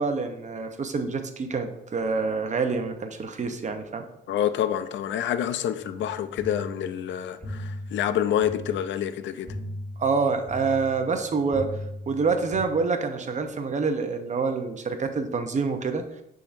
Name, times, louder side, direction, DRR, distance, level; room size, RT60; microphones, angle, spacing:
voice 1, 0.0-4.1 10.0-11.7 12.1-16.0, right 4 dB, 40° right, 0.8 m, -27 dB
voice 2, 4.3-9.6, left 10 dB, 70° left, 0.5 m, -27 dB
sound 1, 5.8-12.6, left 1 dB, 5° right, 2.4 m, -39 dB
9.9 x 3.8 x 2.6 m
cardioid pair, 90°, 20 cm